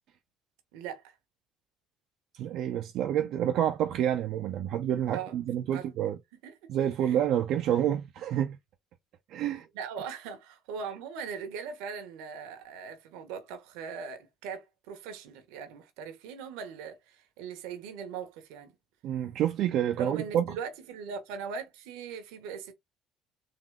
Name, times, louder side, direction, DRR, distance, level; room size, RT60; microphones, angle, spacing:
voice 1, 0.7-1.1 5.1-5.4 5.7-5.9 6.4-6.7 7.0-7.2 9.7-18.7 19.9-22.7, right 6 dB, 85° right, 1.1 m, -40 dB
voice 2, 2.3-6.2 6.7-8.6 9.3-9.7 19.0-20.5, right 10 dB, 65° right, 0.6 m, -28 dB
3.8 x 2.7 x 3.3 m
supercardioid pair, 90°, 0 cm